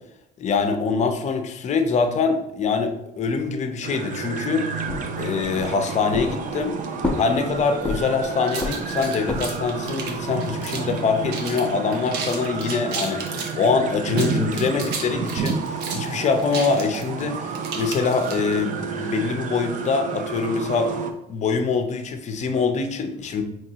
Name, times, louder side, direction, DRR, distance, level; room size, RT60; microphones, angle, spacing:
voice 1, 0.4-4.6 5.2-6.8 7.1-20.9 21.3-23.4, left 5 dB, 45° left, 7 dB, 0.5 m, -24 dB
sound 1, 3.8-21.1, right 5 dB, 50° right, 0.5 m, -30 dB
sound 2, 4.9-5.7 6.1-6.7 7.0-8.2 8.6-9.7, left 2 dB, 5° left, 0.7 m, -29 dB
sound 3, 8.5-11.0 11.3-11.6 11.9-13.6 14.0-18.6, right 5 dB, 75° right, 0.8 m, -33 dB
4.5 x 3.0 x 2.8 m, 0.81 s
cardioid pair, 110°, 17 cm